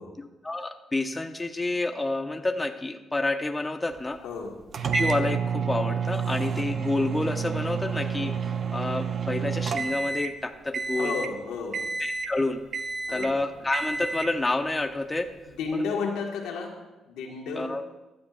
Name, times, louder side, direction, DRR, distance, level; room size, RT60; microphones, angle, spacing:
voice 1, 0.2-4.2 4.9-8.4 8.7-11.1 12.0-12.6 13.1-15.3 15.7-15.8 17.5-17.8, left 2 dB, 20° left, 6 dB, 0.7 m, -29 dB
voice 2, 4.2-4.6 11.0-11.9 13.1-13.3 15.5-16.8 17.1-17.8, left 4 dB, 90° left, 1 dB, 1.6 m, -32 dB
sound 1, 4.7-10.4 10.7-11.3 11.7-12.4 12.7-13.3 13.7-14.4, right 5 dB, 50° right, 0.6 m, -29 dB
15.0 x 10.5 x 2.5 m, 1.0 s
cardioid pair, 90°, 0 cm